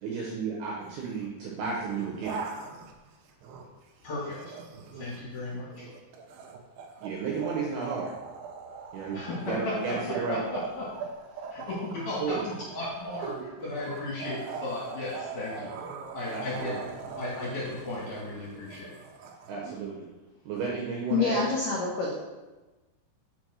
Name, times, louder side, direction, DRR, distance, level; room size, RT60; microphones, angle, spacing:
voice 1, 0.0-2.4 7.0-8.1 8.9-9.2 9.5-10.4 12.2-12.4 16.3-16.7 19.5-20.1 20.5-21.4, right 5 dB, 75° right, -3 dB, 2.4 m, -33 dB
sound 1, 0.8-1.3 1.8-3.8 4.2-19.8, right 5 dB, 90° right, 2.2 m, -41 dB
voice 2, 4.0-4.6 4.9-5.9 9.1-10.9 11.5-15.7 16.1-16.8 17.2-18.9, left 2 dB, 55° left, -5 dB, 2.4 m, -35 dB
voice 3, 21.1-22.1, left 4 dB, 80° left, -3 dB, 1.9 m, -26 dB
6.9 x 5.2 x 6.3 m, 1.1 s
omnidirectional pair, 5.8 m